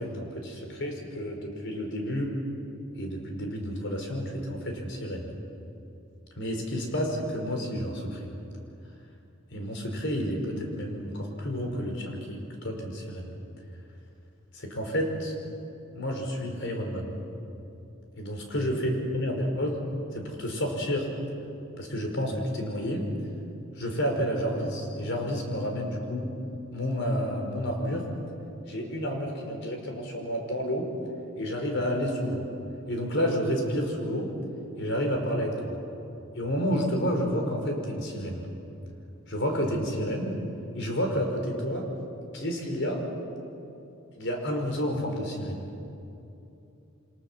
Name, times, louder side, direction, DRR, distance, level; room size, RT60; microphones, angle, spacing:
voice 1, 0.0-2.4 3.0-5.3 6.4-8.3 9.5-13.3 14.5-15.3 15.9-17.2 18.2-19.8 20.1-21.1 21.8-23.1 23.8-26.3 26.7-28.1 28.7-30.9 31.4-32.5 32.9-34.3 34.8-35.8 36.4-38.5 39.3-40.4 40.8-41.9 42.3-43.0 44.2-45.7, equal, 65° left, 2 dB, 5.5 m, -30 dB
29.0 x 25.5 x 7.7 m, 2.8 s
head